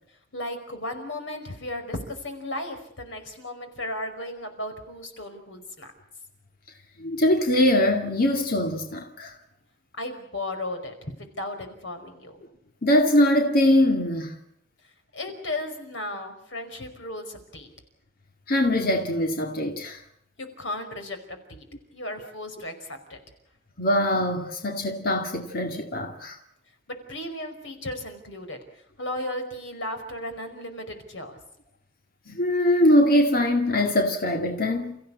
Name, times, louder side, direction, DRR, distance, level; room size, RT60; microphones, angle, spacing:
voice 1, 0.3-5.9 10.0-12.4 15.1-17.7 20.4-21.7 21.9-23.2 26.9-31.4, left 1 dB, 75° left, 5.1 m, -35 dB
voice 2, 7.0-9.4 12.8-14.3 18.5-20.0 23.8-26.4 32.3-35.0, left 1 dB, 50° left, 2.2 m, -22 dB
29.5 x 15.5 x 8.5 m
head